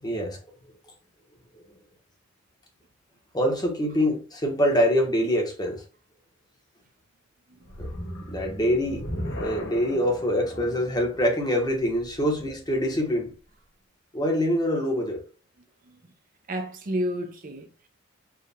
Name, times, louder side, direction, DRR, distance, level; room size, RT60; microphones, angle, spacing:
voice 1, 0.0-0.8 1.5-1.8 3.3-5.8 7.8-7.9 8.3-9.0 9.4-13.3 14.1-15.2, equal, 20° left, 1.0 m, -25 dB
sound 1, 7.6-12.9, equal, 55° left, 1.1 m, -37 dB
voice 2, 16.5-17.9, equal, 40° right, 0.5 m, -31 dB
4.6 x 2.4 x 3.4 m
head